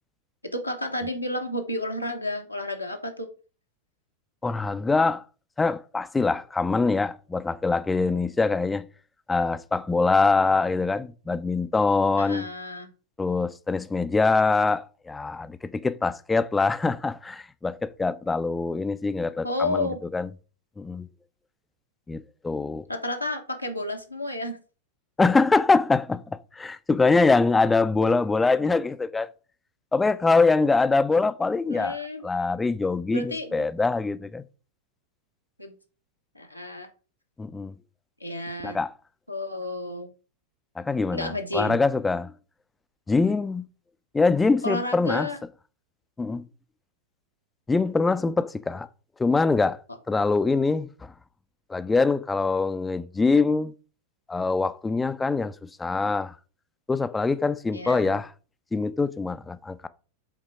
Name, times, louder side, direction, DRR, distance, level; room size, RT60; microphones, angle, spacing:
voice 1, 0.5-3.3 12.2-12.9 19.4-20.0 22.9-24.6 31.7-32.2 33.1-33.6 35.6-35.7 36.3-36.9 38.2-38.8 39.3-40.1 41.1-41.8 44.6-45.4 49.9-50.0 57.7-58.2, left 1 dB, 90° left, 1.1 m, -31 dB
voice 2, 4.4-5.2 5.6-8.9 9.3-12.5 13.2-20.3 20.8-21.1 22.1-22.8 25.2-29.3 29.9-32.0 32.2-34.4 37.4-37.7 38.6-38.9 40.8-42.3 43.1-43.7 44.1-45.3 46.2-46.4 47.7-48.9 49.2-49.8 50.1-51.1 51.7-53.7 54.3-56.3 56.9-58.3 58.7-59.9, left 3 dB, 10° left, 0.4 m, -24 dB
7.9 x 3.6 x 4.8 m
figure-of-eight pair, 90°, 0 cm